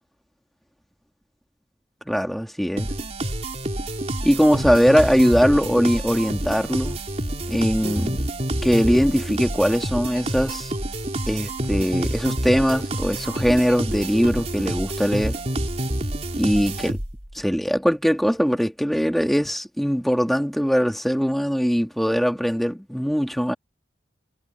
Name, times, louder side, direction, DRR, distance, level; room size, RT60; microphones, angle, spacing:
voice 1, 2.1-2.9 4.2-7.0 7.5-8.2 8.6-10.7 11.3-15.4 16.4-17.0 17.4-23.5, equal, ahead, 2.2 m, -21 dB
sound 1, 2.8-17.3, right 1 dB, 35° right, 2.9 m, -28 dB
head